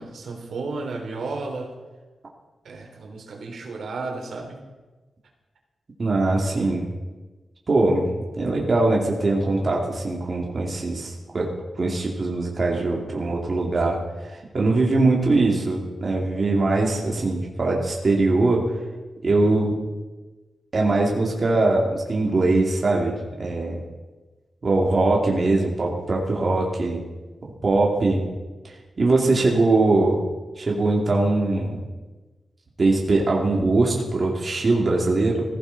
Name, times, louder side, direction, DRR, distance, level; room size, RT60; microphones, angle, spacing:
voice 1, 0.0-1.7 2.6-4.6, right 3 dB, 80° right, 1 dB, 3.2 m, -33 dB
voice 2, 6.0-6.9 7.7-8.1 8.3-11.5 11.8-14.0 14.2-18.6 19.2-19.7 20.7-23.8 24.6-27.0 27.6-28.2 28.6-30.2 30.6-31.8 32.8-35.4, right 2 dB, 40° right, -2 dB, 2.5 m, -21 dB
20.5 x 15.5 x 4.1 m, 1.2 s
wide cardioid pair, 145°, 0 cm